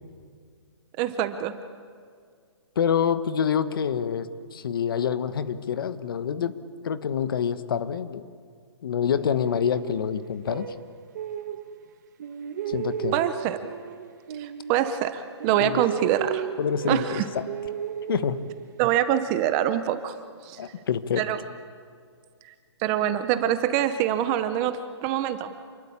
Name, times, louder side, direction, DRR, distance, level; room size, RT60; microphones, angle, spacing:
voice 1, 1.0-1.5 13.1-13.6 14.4-16.5 16.9-17.3 18.8-20.2 20.4-20.6 21.2-21.4 22.8-25.5, right 11 dB, 15° right, 11 dB, 0.7 m, -25 dB
voice 2, 2.7-6.6 6.8-8.2 8.8-10.7 12.7-13.2 15.6-15.8 16.6-17.5 18.1-18.5 20.6-21.2, left 7 dB, 50° left, 13 dB, 1.3 m, -27 dB
sound 1, 9.1-11.9 12.2-15.1 15.4-18.9, right 8 dB, 40° right, 1.3 m, -35 dB
27.5 x 21.0 x 8.5 m, 2.1 s
hypercardioid pair, 170°, 15 cm